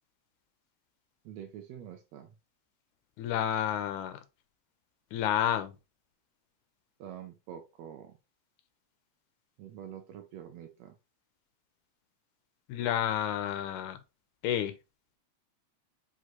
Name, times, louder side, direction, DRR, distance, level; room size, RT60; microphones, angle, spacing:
voice 1, 1.2-2.3 7.0-8.2 9.6-11.0, right 9 dB, 80° right, 1.6 m, -46 dB
voice 2, 3.2-4.2 5.1-5.7 12.7-14.0 14.4-14.7, left 10 dB, 90° left, 2.0 m, -30 dB
6.3 x 2.5 x 2.9 m
omnidirectional pair, 3.4 m